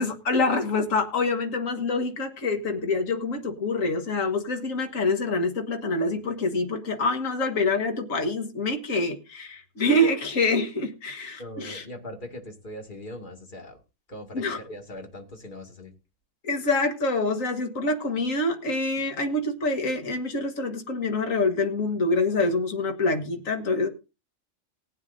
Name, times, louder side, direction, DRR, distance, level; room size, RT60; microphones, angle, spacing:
voice 1, 0.0-11.8 14.3-14.6 16.4-23.9, left 2 dB, 80° left, 5 dB, 1.9 m, -26 dB
voice 2, 11.4-13.8 14.1-15.9, left 1 dB, 40° left, 3 dB, 2.3 m, -40 dB
19.5 x 9.3 x 2.6 m, 0.29 s
omnidirectional pair, 1.4 m